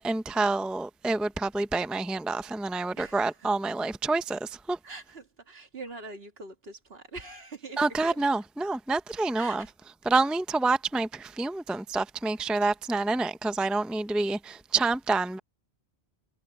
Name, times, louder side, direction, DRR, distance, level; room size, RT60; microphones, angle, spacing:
voice 1, 0.0-4.8 7.8-9.7 10.0-15.4, right 3 dB, ahead, 0.5 m, -28 dB
voice 2, 3.0-3.7 4.8-8.2 9.3-9.7 12.4-12.7, right 3 dB, 65° right, 2.1 m, -44 dB
omnidirectional pair, 1.1 m